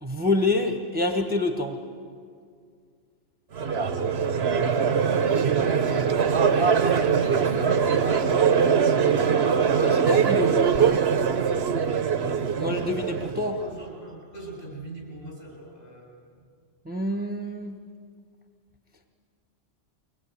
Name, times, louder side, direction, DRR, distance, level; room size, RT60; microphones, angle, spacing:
voice 1, 0.0-1.8 9.7-11.0 12.6-13.6 16.8-17.8, left 2 dB, 10° right, 5 dB, 1.1 m, -27 dB
Crowd, 3.5-13.7, right 6 dB, 60° right, 1.1 m, -22 dB
voice 2, 5.5-6.1 6.8-9.3 13.6-16.1, right 1 dB, 50° left, -1 dB, 7.7 m, -41 dB
23.5 x 19.5 x 9.6 m, 2.1 s
omnidirectional pair, 1.3 m